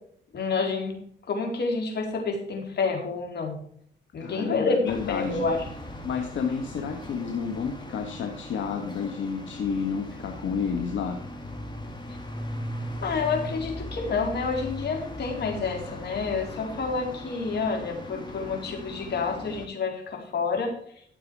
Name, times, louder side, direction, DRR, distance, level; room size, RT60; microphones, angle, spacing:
voice 1, 0.3-1.0 1.3-3.5 4.1-4.8 5.1-5.6 13.0-20.7, left 4 dB, 55° left, 2 dB, 4.4 m, -28 dB
voice 2, 4.2-5.5 6.0-11.2, left 6 dB, 75° left, 4 dB, 1.8 m, -30 dB
sound 1, 4.8-19.7, equal, 20° left, 3.3 m, -39 dB
14.5 x 7.0 x 4.8 m, 0.63 s
cardioid pair, 90°, 20 cm